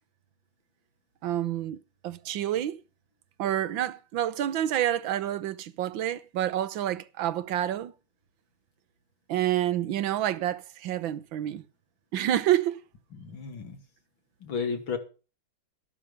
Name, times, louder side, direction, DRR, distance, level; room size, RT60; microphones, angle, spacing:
voice 1, 1.2-1.8 2.0-2.8 3.4-7.9 9.3-11.6 12.1-12.8, right 12 dB, 80° right, 1.6 m, -28 dB
voice 2, 13.1-13.8 14.4-15.0, left 5 dB, 85° left, 3.3 m, -33 dB
13.5 x 11.5 x 5.1 m
omnidirectional pair, 2.1 m